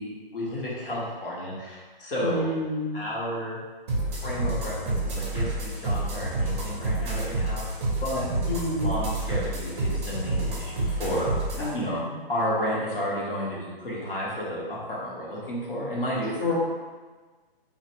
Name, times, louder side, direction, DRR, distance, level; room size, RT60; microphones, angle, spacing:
voice 1, 0.0-2.5 2.9-3.6 4.2-7.6 8.0-8.3 8.8-11.3 11.7-16.3, equal, 65° left, -6 dB, 1.1 m, -32 dB
voice 2, 2.2-3.0 8.5-9.0 11.6-12.1 16.4-16.5, left 2 dB, 25° left, -8 dB, 0.5 m, -29 dB
sound 1, 3.9-11.7, right 2 dB, 30° right, 0.6 m, -28 dB
2.8 x 2.4 x 2.8 m, 1.4 s
figure-of-eight pair, 140°, 29 cm